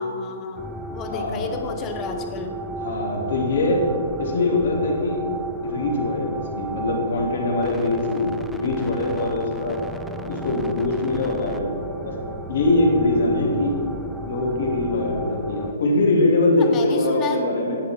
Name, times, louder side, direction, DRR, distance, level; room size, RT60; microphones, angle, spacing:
voice 1, 0.0-2.6 16.6-17.5, left 5 dB, 20° left, 5 dB, 0.8 m, -32 dB
sound 1, 0.6-15.7, right 2 dB, 5° right, 0.3 m, -34 dB
voice 2, 1.1-1.6 2.8-3.8 4.2-5.2 5.6-9.8 10.2-12.2 12.5-13.9 14.3-17.8, left 2 dB, 65° left, -2 dB, 2.6 m, -22 dB
10.5 x 9.5 x 3.6 m, 2.6 s
hypercardioid pair, 160°, 0 cm